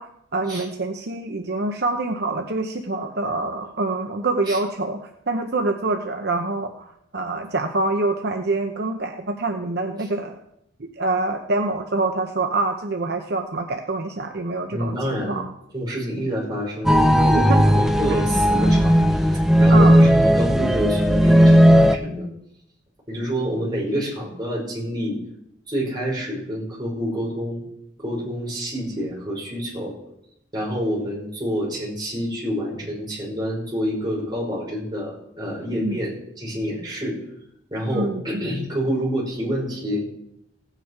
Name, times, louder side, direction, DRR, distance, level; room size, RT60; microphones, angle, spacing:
voice 1, 0.0-10.4 10.8-15.0 15.3-15.5 17.2-17.6 18.1-18.2 19.7-20.0 35.8-36.0 37.9-38.4, right 2 dB, 60° right, 4 dB, 0.8 m, -26 dB
voice 2, 14.7-15.5 15.7-19.0 19.3-22.3 23.1-25.2 25.7-27.7 28.0-29.9 30.5-37.2 37.7-40.1, equal, 20° right, -4 dB, 5.2 m, -27 dB
sound 1, 16.9-22.0, equal, ahead, 0.6 m, -15 dB
16.5 x 9.1 x 4.7 m, 0.78 s
head